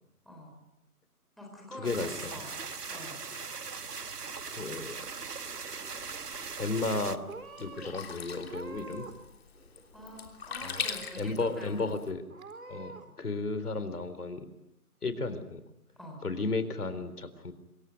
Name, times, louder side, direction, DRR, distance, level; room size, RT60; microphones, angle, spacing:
voice 1, 0.2-0.6 1.4-2.5 2.9-3.2 9.9-11.9 16.0-16.2, left 1 dB, ahead, -2 dB, 4.2 m, -46 dB
voice 2, 1.8-2.4 4.6-5.0 6.6-7.2 7.6-9.1 10.6-10.9 11.2-12.2 12.7-14.5 15.0-15.6 16.2-17.5, left 3 dB, 80° left, 11 dB, 4.0 m, -33 dB
sound 1, 1.8-7.2, right 5 dB, 85° right, 1.6 m, -40 dB
Purr / Meow, 4.5-5.3 5.6-6.2 6.9-7.0 7.3-7.9 8.4-9.3 9.5-10.3 10.7-11.3 11.7-11.8 12.3-13.0, right 3 dB, 60° right, 4.6 m, -47 dB
Sink (filling or washing), 6.0-12.1, left 6 dB, 40° left, 3.3 m, -42 dB
27.0 x 22.5 x 9.4 m, 0.86 s
figure-of-eight pair, 160°, 45 cm